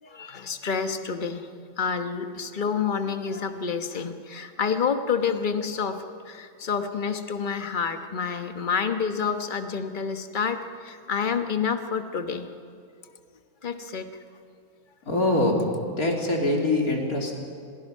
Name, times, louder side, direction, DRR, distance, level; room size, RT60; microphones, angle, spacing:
voice 1, 0.0-12.5 13.6-14.1, left 6 dB, 35° left, 7 dB, 1.2 m, -28 dB
voice 2, 15.1-15.6 16.0-17.3, left 2 dB, 85° left, 0 dB, 3.7 m, -23 dB
30.0 x 22.5 x 5.5 m, 2.3 s
omnidirectional pair, 1.5 m